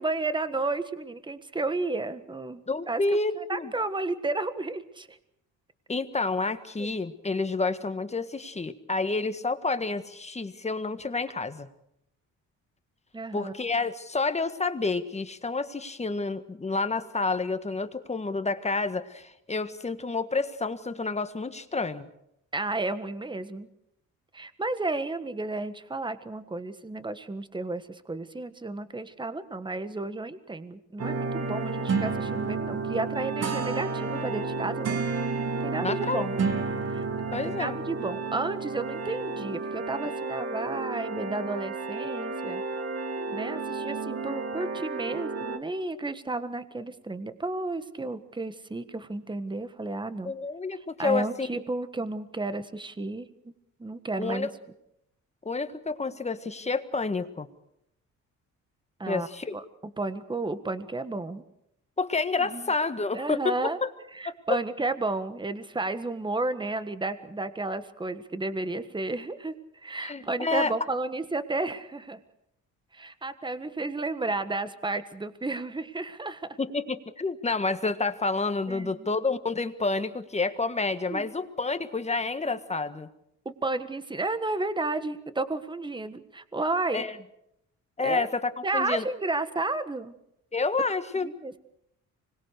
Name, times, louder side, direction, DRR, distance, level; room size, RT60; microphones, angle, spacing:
voice 1, 0.0-3.0 3.3-5.2 6.8-6.9 13.1-13.5 22.5-23.7 24.3-35.0 35.6-36.4 36.9-37.1 37.4-42.6 43.3-50.3 51.0-53.3 53.8-54.5 59.0-59.3 59.5-59.6 60.0-61.4 62.4-62.7 63.1-63.8 64.1-69.5 69.8-72.2 72.9-76.5 78.7-79.1 81.1-81.3 83.4-87.1 88.0-88.3 88.6-90.1 91.2-91.6, right 2 dB, 15° right, 12 dB, 1.5 m, -32 dB
voice 2, 2.7-3.7 5.9-11.7 13.3-22.1 35.8-36.2 37.3-37.8 50.2-51.6 54.2-54.5 55.4-57.5 59.1-59.5 62.0-63.9 64.5-64.6 70.0-70.7 76.6-83.1 86.9-87.2 88.0-89.1 90.5-91.3, left 3 dB, 20° left, 10 dB, 1.6 m, -29 dB
sound 1, 31.0-45.6, right 4 dB, 55° right, 2.2 m, -31 dB
25.5 x 20.5 x 6.7 m, 0.78 s
cardioid pair, 90°, 30 cm